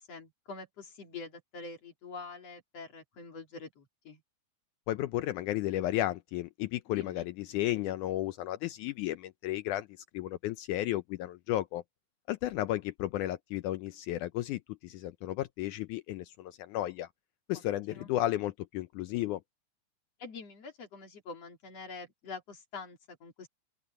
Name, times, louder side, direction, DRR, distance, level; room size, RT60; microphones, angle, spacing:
voice 1, 0.1-4.2 6.9-7.3 17.5-17.6 17.9-18.1 20.2-23.5, left 4 dB, 50° left, 4.2 m, -45 dB
voice 2, 4.9-9.9 10.1-11.8 12.3-17.1 17.5-19.4, left 14 dB, 80° left, 2.1 m, -33 dB
open air
omnidirectional pair, 3.7 m